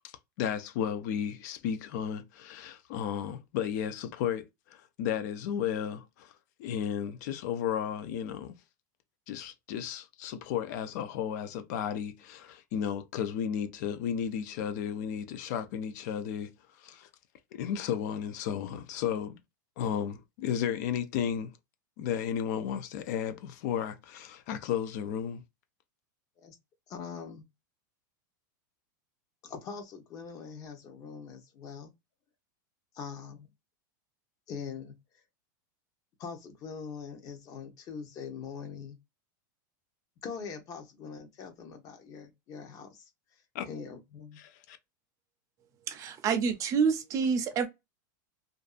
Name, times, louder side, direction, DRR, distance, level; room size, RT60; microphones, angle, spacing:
voice 1, 0.0-6.3 6.6-8.5 9.3-16.5 16.8-17.1 17.5-19.4 19.8-21.5 22.0-25.4 43.5-43.7 44.4-44.8, left 8 dB, 60° left, 0.4 m, -33 dB
voice 2, 26.9-27.4 29.4-31.9 32.9-33.5 34.5-35.0 36.2-39.0 40.2-43.1 43.6-44.4, left 6 dB, 35° left, 0.8 m, -42 dB
voice 3, 45.9-47.7, right 6 dB, 30° right, 0.5 m, -27 dB
2.6 x 2.3 x 2.4 m
supercardioid pair, 140°, 11 cm